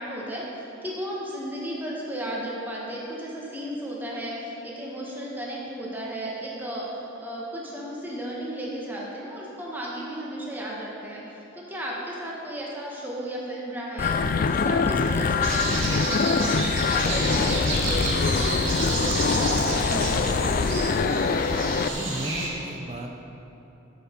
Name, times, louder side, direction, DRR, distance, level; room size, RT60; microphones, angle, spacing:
voice 1, 0.0-21.0, right 1 dB, 10° right, -5 dB, 1.6 m, -34 dB
sound 1, 14.0-21.9, left 4 dB, 45° left, 0.4 m, -24 dB
sound 2, 15.4-22.5, right 2 dB, 70° right, 2.2 m, -30 dB
voice 2, 21.9-23.1, right 1 dB, 30° right, 2 dB, 0.8 m, -34 dB
13.0 x 7.0 x 5.4 m, 2.9 s
head